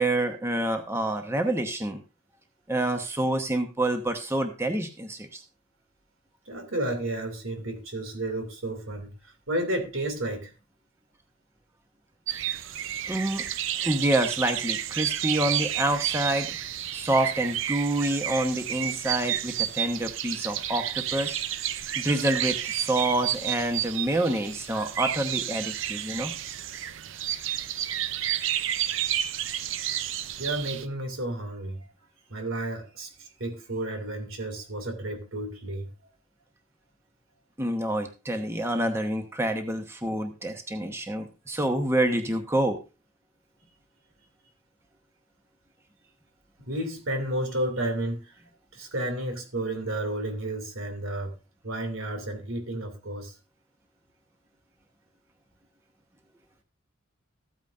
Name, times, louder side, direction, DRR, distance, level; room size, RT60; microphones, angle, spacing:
voice 1, 0.0-2.0 2.7-5.4 13.0-13.4 13.7-16.6 16.9-21.4 22.0-26.3 37.6-42.8, right 1 dB, 15° right, 1.0 m, -27 dB
voice 2, 6.5-10.5 30.4-31.9 32.3-36.1 46.7-48.4 48.7-51.4 51.6-53.4, right 1 dB, 90° right, 2.5 m, -32 dB
sound 1, 12.3-30.9, right 11 dB, 70° right, 0.6 m, -31 dB
14.5 x 9.0 x 2.6 m
head